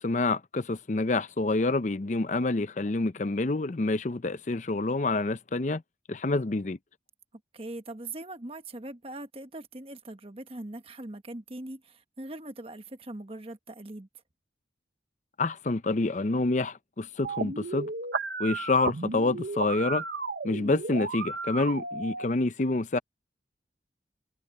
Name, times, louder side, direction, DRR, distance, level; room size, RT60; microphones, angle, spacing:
voice 1, 0.0-5.8 6.1-6.8 15.4-17.9 18.4-20.0 20.4-23.0, left 2 dB, 45° left, 0.6 m, -27 dB
voice 2, 7.5-14.1, right 2 dB, 30° right, 1.3 m, -41 dB
sound 1, 17.2-22.2, right 4 dB, 70° right, 1.1 m, -34 dB
head